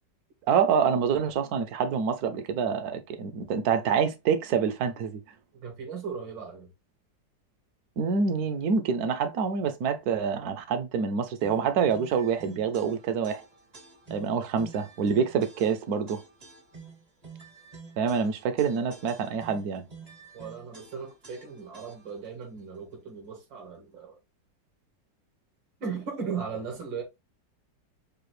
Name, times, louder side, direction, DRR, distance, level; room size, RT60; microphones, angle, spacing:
voice 1, 0.5-5.2 8.0-13.4 14.1-16.2 18.0-19.8, right 6 dB, 65° right, 1.1 m, -26 dB
voice 2, 5.5-6.7 20.3-24.2 25.8-27.0, right 6 dB, 80° right, 2.0 m, -37 dB
sound 1, 11.4-22.3, right 4 dB, 35° right, 0.6 m, -49 dB
4.8 x 2.4 x 3.1 m
omnidirectional pair, 2.0 m